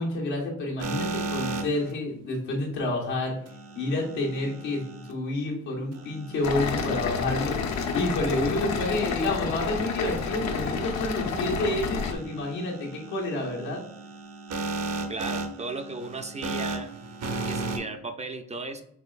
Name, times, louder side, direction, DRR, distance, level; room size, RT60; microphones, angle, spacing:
voice 1, 0.0-3.4 3.7-13.8, left 2 dB, 90° left, -2 dB, 1.4 m, -29 dB
sound 1, 0.8-1.9 3.5-5.1 5.9-17.8, right 3 dB, 55° right, 0.8 m, -36 dB
sound 2, 6.4-12.1, left 5 dB, 65° left, 0.7 m, -29 dB
voice 2, 15.1-16.9 17.5-18.8, right 3 dB, 25° right, 6 dB, 0.5 m, -36 dB
5.8 x 3.1 x 2.4 m, 0.71 s
cardioid pair, 90°, 30 cm